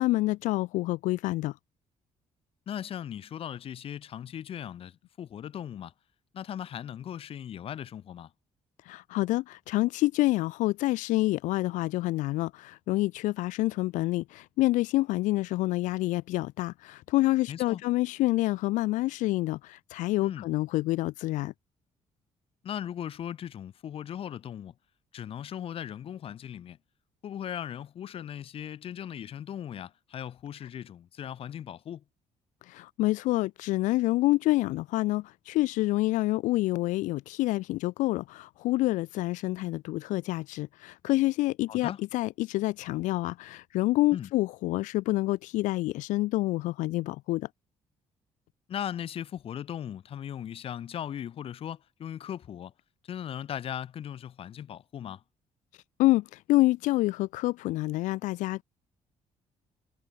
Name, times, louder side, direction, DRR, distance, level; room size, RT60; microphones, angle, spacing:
voice 1, 0.0-1.6 8.8-21.5 32.6-47.5 56.0-58.6, left 18 dB, 85° left, 0.4 m, -27 dB
voice 2, 2.7-5.9 6.3-8.3 17.5-17.8 20.2-20.5 22.6-24.7 25.1-26.8 27.2-32.0 41.7-42.0 44.1-44.3 48.7-52.7 53.0-55.2, left 9 dB, 50° left, 0.7 m, -38 dB
cardioid pair, 110°, 13 cm